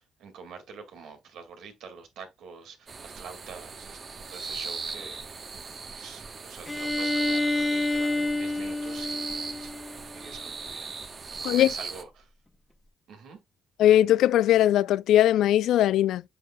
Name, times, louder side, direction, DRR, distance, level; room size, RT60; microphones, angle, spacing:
voice 1, 0.0-4.0 4.3-5.5 6.0-9.7 10.1-10.9 11.3-12.3 13.1-13.4, right 5 dB, 80° right, 2.2 m, -46 dB
sound 1, 2.9-12.0, right 4 dB, 40° right, 1.2 m, -38 dB
Bowed string instrument, 6.7-10.4, left 2 dB, 15° left, 1.4 m, -29 dB
voice 2, 13.8-16.2, left 12 dB, 85° left, 0.4 m, -20 dB
6.8 x 6.6 x 2.3 m
cardioid pair, 90°, 0 cm